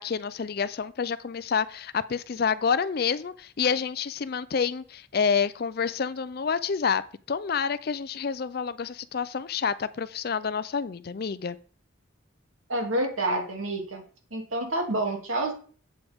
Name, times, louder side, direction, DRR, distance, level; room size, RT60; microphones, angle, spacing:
voice 1, 0.0-7.0 7.3-11.6, left 6 dB, 50° left, 16 dB, 0.4 m, -28 dB
voice 2, 12.7-14.0 14.3-15.5, right 1 dB, 80° right, 1 dB, 2.5 m, -28 dB
8.5 x 7.8 x 3.5 m, 0.42 s
head